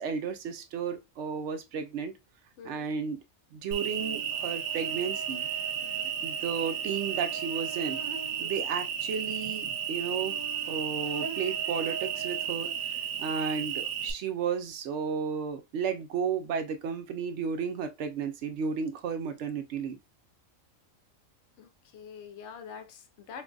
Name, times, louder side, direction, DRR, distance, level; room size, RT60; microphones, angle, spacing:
voice 1, 0.0-2.1 2.6-3.2 3.5-5.5 6.2-8.0 8.4-12.7 13.2-20.0, right 6 dB, 65° right, 0.8 m, -33 dB
Cricket, 3.7-14.1, right 8 dB, 90° right, 1.1 m, -33 dB
voice 2, 5.8-6.1 8.4-8.7 13.2-13.3 21.6-23.4, left 6 dB, 60° left, 0.9 m, -46 dB
3.7 x 2.6 x 2.2 m
omnidirectional pair, 1.5 m